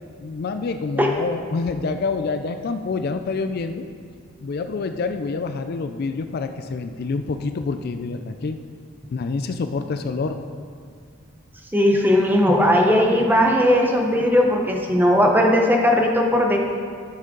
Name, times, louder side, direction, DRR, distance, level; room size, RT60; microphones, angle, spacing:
voice 1, 0.2-3.9 4.4-8.6 9.1-10.4, left 4 dB, 50° left, 8 dB, 0.4 m, -27 dB
voice 2, 11.7-16.6, left 1 dB, 10° right, 1 dB, 0.9 m, -18 dB
13.0 x 6.5 x 3.9 m, 2.2 s
head